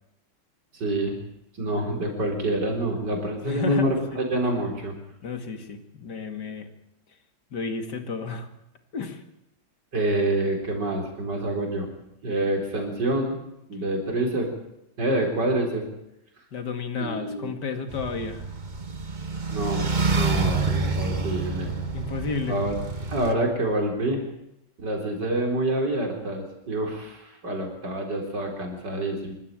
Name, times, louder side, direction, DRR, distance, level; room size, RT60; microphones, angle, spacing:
voice 1, 0.7-1.2 1.6-4.9 9.9-11.9 12.2-13.4 13.7-14.5 15.0-15.9 17.0-17.5 19.5-21.7 22.5-22.7 23.1-24.2 24.8-29.3, right 1 dB, 75° right, 2 dB, 4.6 m, -27 dB
voice 2, 3.4-4.2 5.2-6.7 7.5-8.5 8.9-9.2 16.5-18.4 21.9-22.6, left 5 dB, 70° left, 7 dB, 2.8 m, -32 dB
sound 1, 17.9-23.3, right 4 dB, 30° right, 1.4 m, -27 dB
25.0 x 14.0 x 9.1 m, 0.86 s
omnidirectional pair, 1.9 m